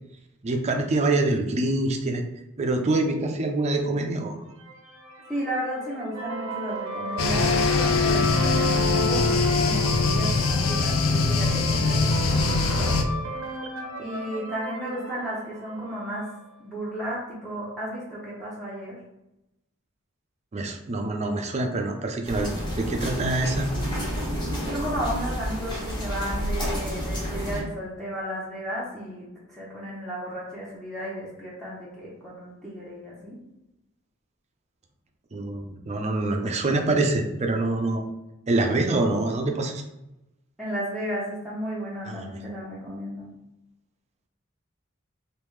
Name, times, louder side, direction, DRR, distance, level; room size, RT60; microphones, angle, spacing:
voice 1, 0.4-2.2 2.6-4.4 20.5-23.7 35.3-38.0 38.5-39.8 42.0-42.3, right 2 dB, 35° right, 3 dB, 0.5 m, -25 dB
sound 1, 4.6-16.4, right 1 dB, 80° right, 0.7 m, -34 dB
voice 2, 5.3-13.0 14.0-16.3 16.6-19.0 24.7-33.4 40.6-43.3, equal, ahead, -8 dB, 0.7 m, -33 dB
sound 2, 7.2-13.0, left 4 dB, 75° left, 0.4 m, -22 dB
sound 3, 22.2-27.6, equal, 20° left, 1.1 m, -30 dB
3.5 x 2.6 x 3.2 m, 0.90 s
head